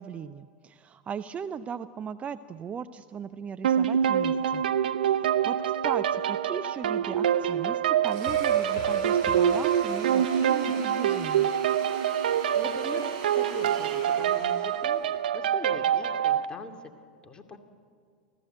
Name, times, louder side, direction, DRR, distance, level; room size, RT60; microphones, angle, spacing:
voice 1, 0.0-4.6 5.0-11.5, right 7 dB, 25° right, 11 dB, 0.7 m, -38 dB
sound 1, 3.6-16.5, right 9 dB, 70° right, 0.9 m, -25 dB
Domestic sounds home sounds, 8.1-15.1, right 5 dB, 55° right, 6.5 m, -41 dB
sound 2, 8.3-11.6, left 2 dB, 50° left, 4.6 m, -42 dB
voice 2, 12.3-13.1 13.3-15.0 15.3-16.7 17.2-17.6, left 3 dB, 20° left, 3 dB, 2.5 m, -42 dB
28.5 x 15.0 x 8.1 m, 2.2 s
hypercardioid pair, 95°, 5 cm